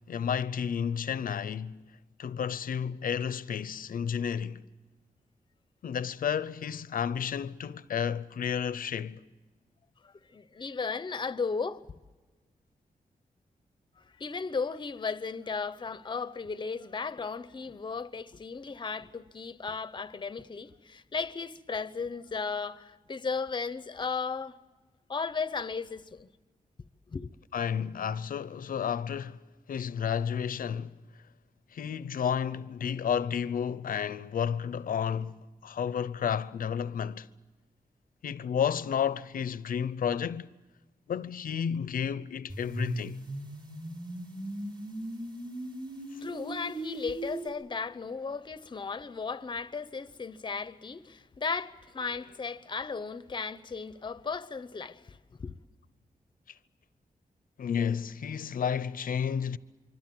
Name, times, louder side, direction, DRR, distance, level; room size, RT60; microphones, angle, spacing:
voice 1, 0.1-1.8 2.2-4.6 5.8-9.2 27.5-29.4 29.7-30.9 31.7-37.3 38.2-40.5 41.1-43.2 57.6-59.6, left 8 dB, 85° left, 0.7 m, -31 dB
voice 2, 10.0-11.8 14.0-24.6 25.1-26.3 27.1-27.3 46.2-55.6, left 5 dB, 35° left, 0.8 m, -35 dB
sound 1, 42.5-47.5, right 1 dB, 35° right, 4.3 m, -38 dB
25.5 x 25.0 x 7.7 m
wide cardioid pair, 140°, 14 cm